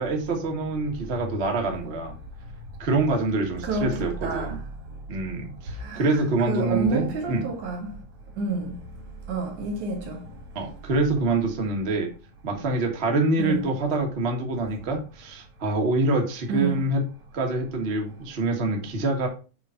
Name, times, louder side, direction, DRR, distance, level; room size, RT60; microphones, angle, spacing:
voice 1, 0.0-2.1 2.8-4.6 5.1-7.5 10.5-12.1 12.4-17.0 17.3-19.3, right 2 dB, 55° right, 0.6 m, -26 dB
voice 2, 3.6-4.6 5.8-7.9 8.4-8.7 9.3-10.2 13.4-13.6 16.5-16.8, right 2 dB, 85° right, 3.1 m, -29 dB
6.8 x 2.5 x 5.5 m
omnidirectional pair, 3.3 m